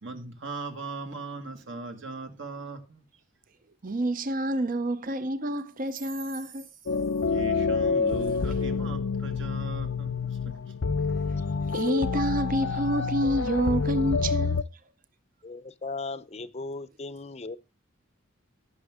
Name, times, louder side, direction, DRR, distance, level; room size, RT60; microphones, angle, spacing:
voice 1, 0.0-2.8 7.3-10.2, right 3 dB, 60° right, 2.0 m, -38 dB
voice 2, 3.8-6.7 8.2-8.6 11.7-14.6, right 1 dB, 45° right, 0.7 m, -28 dB
sound 1, 6.9-14.6, left 4 dB, 80° left, 0.6 m, -28 dB
voice 3, 15.4-17.6, left 3 dB, 30° left, 0.6 m, -37 dB
16.5 x 6.2 x 3.7 m
head